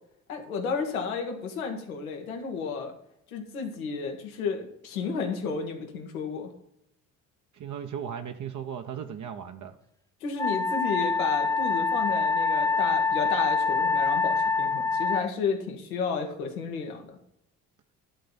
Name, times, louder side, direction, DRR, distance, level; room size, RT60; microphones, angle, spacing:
voice 1, 0.3-2.9 3.3-6.5 10.2-17.2, left 5 dB, 85° left, 3 dB, 1.5 m, -32 dB
voice 2, 7.5-9.8, right 8 dB, 45° right, 5 dB, 1.0 m, -36 dB
Wind instrument woodwind instrument, 10.4-15.3, left 4 dB, 10° left, 0.6 m, -25 dB
11.5 x 4.0 x 7.1 m, 0.78 s
hypercardioid pair, 55°, 41 cm